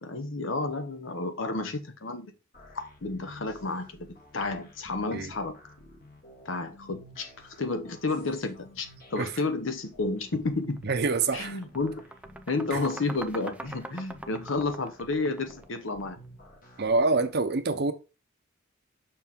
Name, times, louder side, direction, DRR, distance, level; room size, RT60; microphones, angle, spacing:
voice 1, 0.0-2.3 2.7-4.1 4.3-5.6 6.4-10.8 11.3-12.1 12.5-16.2, left 3 dB, 65° left, 1.0 m, -31 dB
sound 1, 2.5-17.3, equal, 45° left, 1.5 m, -52 dB
sound 2, 10.6-10.8 11.2-16.1, right 2 dB, 5° right, 0.4 m, -43 dB
voice 2, 10.8-11.6 12.7-12.8 16.8-17.9, right 3 dB, 55° right, 0.8 m, -26 dB
5.9 x 4.4 x 3.7 m
head